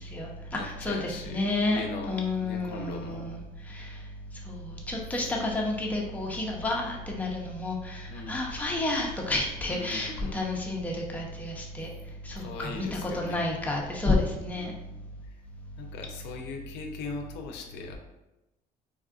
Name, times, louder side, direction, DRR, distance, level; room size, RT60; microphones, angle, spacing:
voice 1, 0.0-1.8 2.1-3.4 3.7-3.9 4.5-11.9 12.2-14.7, left 2 dB, 10° left, -2 dB, 0.5 m, -30 dB
voice 2, 0.5-3.3 8.1-8.4 9.7-10.3 12.4-13.5 14.6-14.8 15.2-15.4 15.8-18.0, left 4 dB, 85° left, 3 dB, 0.5 m, -40 dB
3.5 x 2.4 x 2.3 m, 0.98 s
cardioid pair, 110°, 17 cm